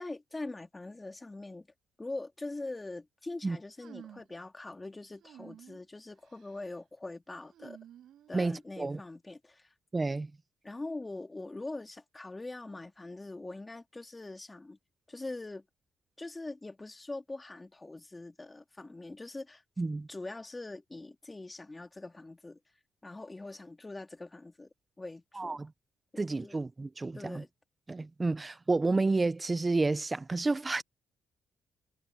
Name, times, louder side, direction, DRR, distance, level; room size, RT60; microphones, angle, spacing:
voice 1, 0.0-1.7 2.0-7.8 8.3-9.7 10.6-14.8 15.1-15.6 16.2-19.6 20.1-22.6 23.0-24.7 25.0-25.6 26.1-26.5 27.1-27.5, left 2 dB, 20° left, 3.1 m, -43 dB
sound 1, 3.8-4.4 5.2-5.9 6.2-6.7 7.5-8.7, right 11 dB, 70° right, 6.4 m, -53 dB
voice 2, 8.3-9.0 9.9-10.3 19.8-20.1 25.4-25.7 26.2-27.4 27.9-30.8, right 3 dB, 25° right, 0.8 m, -30 dB
cardioid pair, 90°, 0 cm